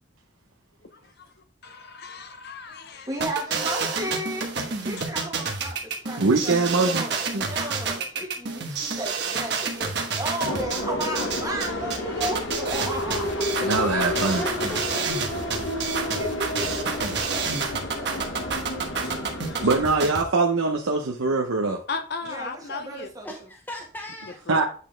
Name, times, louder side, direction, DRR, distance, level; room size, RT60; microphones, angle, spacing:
voice 1, 0.8-1.3 1.6-3.1 4.9-5.1 17.5-18.1 19.0-19.7 21.9-23.1 24.5-24.6, left 4 dB, 50° left, 0.7 m, -37 dB
voice 2, 3.1-6.6 6.8-13.3 15.1-15.2 16.0-17.1 17.7-18.8 22.3-23.3, right 1 dB, 15° right, 1.4 m, -34 dB
sound 1, 3.2-20.2, right 5 dB, 55° right, 1.3 m, -29 dB
voice 3, 6.2-7.0 7.3-7.5 13.7-14.4 19.6-21.8 24.5-24.6, right 3 dB, 80° right, 0.7 m, -22 dB
sound 2, 10.4-19.9, left 1 dB, 70° left, 1.2 m, -31 dB
voice 4, 13.4-15.1 23.2-24.4, equal, 10° left, 0.8 m, -37 dB
8.3 x 4.2 x 3.3 m
head